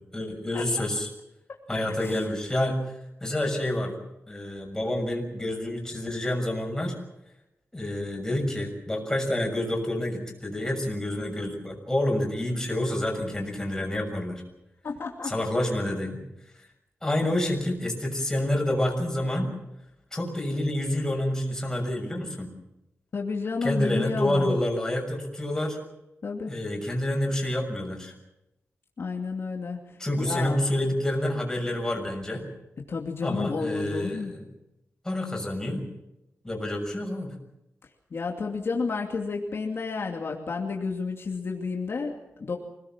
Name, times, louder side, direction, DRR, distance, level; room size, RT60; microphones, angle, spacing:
voice 1, 0.1-1.1 1.7-2.8 3.2-4.0 4.3-7.0 7.7-14.4 15.2-16.2 16.6-16.7 17.0-19.5 20.1-22.5 23.6-25.8 26.5-28.1 30.0-32.5 33.2-34.4 35.0-35.9 36.4-37.3, left 1 dB, 10° left, 1 dB, 6.5 m, -28 dB
voice 2, 14.8-15.3 23.1-24.5 26.2-26.5 29.0-29.8 30.2-30.6 32.9-34.3 38.1-42.6, left 4 dB, 60° left, 1 dB, 2.6 m, -31 dB
25.5 x 19.0 x 7.4 m, 0.89 s
wide cardioid pair, 150°, 5 cm